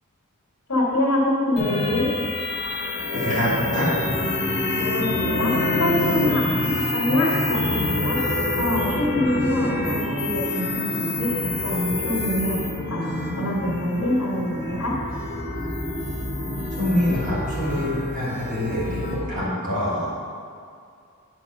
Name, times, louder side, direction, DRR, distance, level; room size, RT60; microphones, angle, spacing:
voice 1, 0.7-2.1 4.8-8.2 8.6-12.6 12.9-14.9, left 1 dB, 80° left, -5 dB, 1.8 m, -25 dB
sound 1, 1.6-19.2, left 2 dB, 55° left, 1.3 m, -26 dB
voice 2, 3.1-4.0 16.7-20.1, left 1 dB, 35° right, -7 dB, 1.9 m, -25 dB
9.3 x 4.7 x 5.4 m, 2.3 s
head